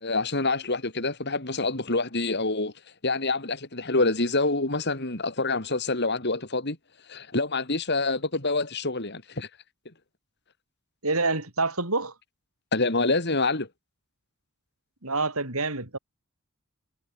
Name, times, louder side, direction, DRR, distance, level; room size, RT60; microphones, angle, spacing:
voice 1, 0.0-2.7 3.0-6.8 7.1-9.5 12.7-13.7, left 3 dB, 50° left, 3.6 m, -26 dB
voice 2, 11.0-12.1 15.0-16.0, right 3 dB, 80° right, 6.7 m, -27 dB
head